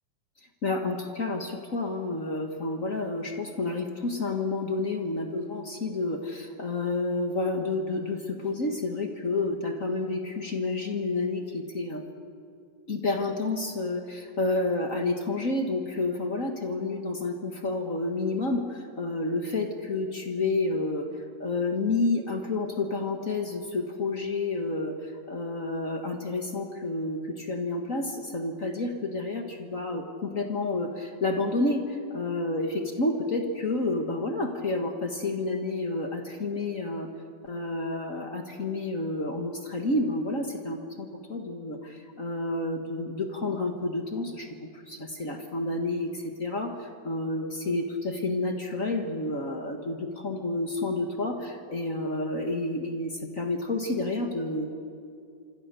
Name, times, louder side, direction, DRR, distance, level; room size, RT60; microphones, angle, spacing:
voice 1, 0.6-12.0 12.9-21.1 21.4-37.1 37.4-54.7, left 2 dB, 35° left, 4 dB, 1.4 m, -30 dB
26.0 x 25.5 x 6.9 m, 2.5 s
omnidirectional pair, 3.3 m